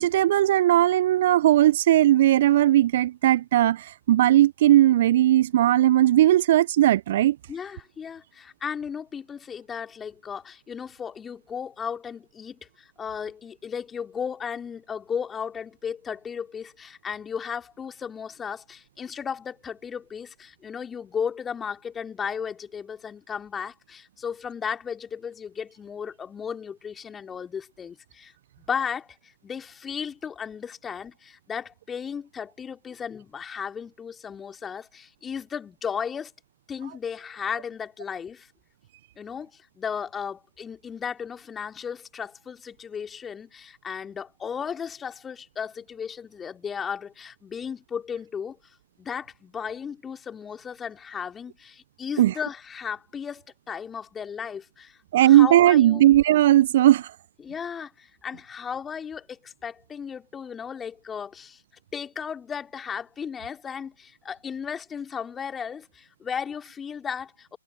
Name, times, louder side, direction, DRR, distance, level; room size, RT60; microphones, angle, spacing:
voice 1, 0.0-7.4 52.2-52.3 55.1-57.1, right 13 dB, 45° right, 1.2 m, -18 dB
voice 2, 7.5-36.3 36.7-38.5 39.2-48.6 49.0-56.0 57.4-61.6 61.9-67.6, left 7 dB, 10° left, 3.2 m, -35 dB
figure-of-eight pair, 125°, 0 cm